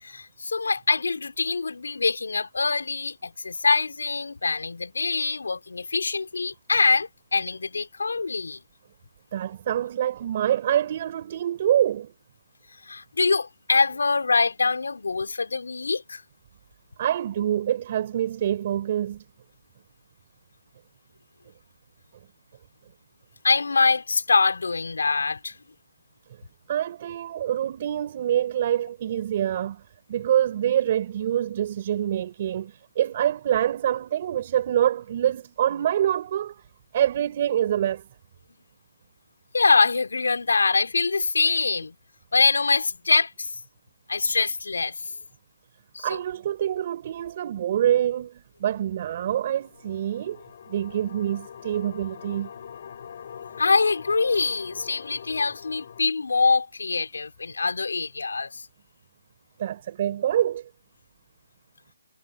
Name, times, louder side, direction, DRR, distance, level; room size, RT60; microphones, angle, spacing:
voice 1, 0.0-8.6 12.9-16.2 23.4-25.5 39.5-42.0 42.3-43.5 44.1-45.1 45.9-46.2 53.6-58.7, left 4 dB, 90° left, 4.5 m, -24 dB
voice 2, 9.3-12.1 17.0-19.2 26.7-29.8 30.1-36.6 36.9-38.0 46.0-52.5 59.6-60.7, right 11 dB, 30° right, 4.8 m, -26 dB
sound 1, 49.2-56.0, left 8 dB, 40° left, 6.9 m, -43 dB
hypercardioid pair, 170°, 0 cm